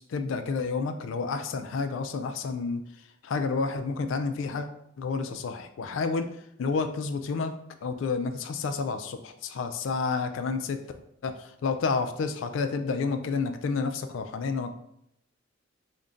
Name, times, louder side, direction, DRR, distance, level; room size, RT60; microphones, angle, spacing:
voice 1, 0.0-2.8 3.2-4.7 5.0-6.3 6.6-7.5 7.8-10.8 11.2-14.9, left 4 dB, 70° left, 8 dB, 0.3 m, -30 dB
3.7 x 2.2 x 3.7 m, 0.76 s
head